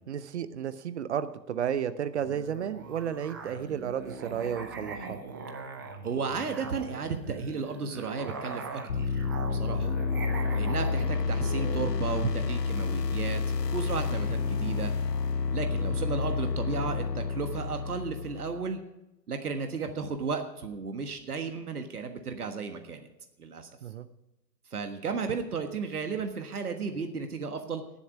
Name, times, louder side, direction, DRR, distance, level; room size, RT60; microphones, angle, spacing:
voice 1, 0.1-5.2 9.7-9.9 15.8-15.9 23.8-24.1, right 8 dB, 45° right, 14 dB, 0.8 m, -33 dB
Musical instrument, 2.2-12.3, right 4 dB, 15° right, 0.5 m, -41 dB
voice 2, 6.0-9.2 9.4-9.9 10.5-13.4 13.7-14.9 15.5-18.8 19.3-23.1 23.4-23.7 24.7-27.8, right 5 dB, 60° right, 6 dB, 1.5 m, -34 dB
sound 1, 8.9-18.7, left 5 dB, 70° left, 0.9 m, -30 dB
19.0 x 7.3 x 4.9 m, 0.94 s
figure-of-eight pair, 120°, 50 cm